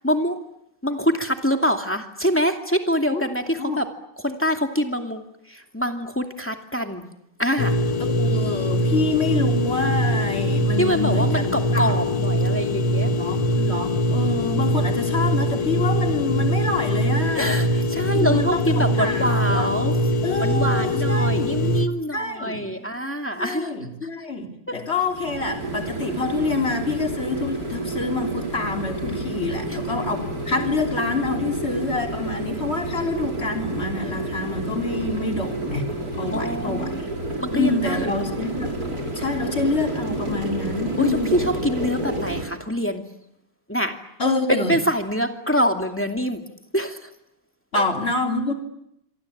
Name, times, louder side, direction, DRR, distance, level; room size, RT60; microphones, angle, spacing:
voice 1, 0.0-0.4 0.8-3.9 4.2-5.2 5.5-7.0 7.4-7.8 10.8-13.1 17.3-19.9 20.4-23.7 24.7-24.8 29.7-29.8 36.3-37.0 37.4-38.1 41.0-43.0 43.7-44.0 44.5-46.5 46.7-47.1, equal, 5° left, 4 dB, 2.4 m, -25 dB
sound 1, 7.6-21.9, equal, 85° left, 2.1 m, -22 dB
voice 2, 8.0-12.0 13.2-17.6 18.1-19.7 20.2-21.5 22.1-22.7 23.4-35.9 36.1-37.1 37.5-41.3 44.2-44.7 47.7-48.5, left 3 dB, 35° left, 3 dB, 3.7 m, -27 dB
sound 2, 25.0-42.4, right 1 dB, 50° right, 5.8 m, -29 dB
26.5 x 25.0 x 8.7 m, 0.78 s
omnidirectional pair, 2.0 m